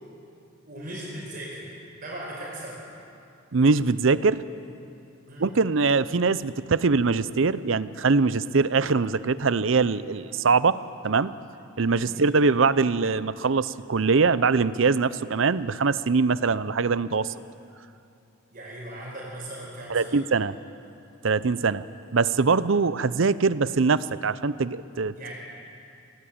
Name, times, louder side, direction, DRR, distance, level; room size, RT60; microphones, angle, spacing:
voice 1, 0.7-2.8 5.3-5.6 12.1-12.3 18.5-20.2 25.1-25.3, right 1 dB, 45° right, -3 dB, 4.9 m, -38 dB
voice 2, 3.5-4.4 5.4-11.3 11.8-17.3 19.9-20.5 21.2-21.8 22.1-25.1, right 4 dB, 65° right, 16 dB, 0.6 m, -22 dB
25.0 x 17.5 x 8.7 m, 2.7 s
head